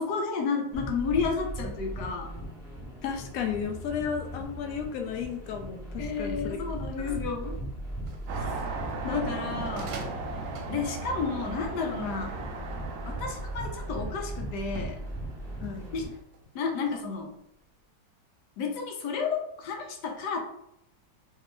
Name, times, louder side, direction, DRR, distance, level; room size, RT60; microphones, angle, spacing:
voice 1, 0.0-2.3 6.0-7.5 8.4-8.5 9.0-10.0 10.7-12.3 13.0-15.0 15.9-16.1 16.5-17.3 18.6-20.4, left 5 dB, 70° left, 2 dB, 1.1 m, -31 dB
sound 1, 0.7-16.1, right 1 dB, 5° right, 0.5 m, -39 dB
voice 2, 3.0-6.6 7.0-7.2 15.6-15.8, left 7 dB, 85° left, 4 dB, 0.7 m, -34 dB
sound 2, 8.1-13.0 13.6-14.1 14.6-17.3 17.6-17.8, right 4 dB, 90° right, 1.4 m, -46 dB
sound 3, 8.3-16.2, right 3 dB, 75° right, 1.2 m, -38 dB
3.3 x 2.9 x 3.1 m, 0.75 s
omnidirectional pair, 2.1 m